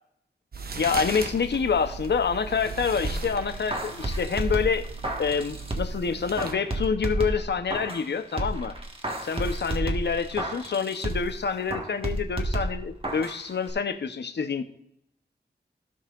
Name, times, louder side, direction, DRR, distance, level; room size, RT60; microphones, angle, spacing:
sound 1, 0.5-6.5, right 4 dB, 60° right, 0.9 m, -38 dB
voice 1, 0.8-4.9 5.2-8.7 9.2-14.6, left 6 dB, 85° left, 9 dB, 0.8 m, -27 dB
sound 2, 3.0-6.0 6.4-8.1 8.4-11.4 11.7-13.4 13.7-13.8, right 1 dB, 30° right, 1.5 m, -31 dB
16.5 x 5.5 x 2.5 m, 0.74 s
wide cardioid pair, 90°, 17 cm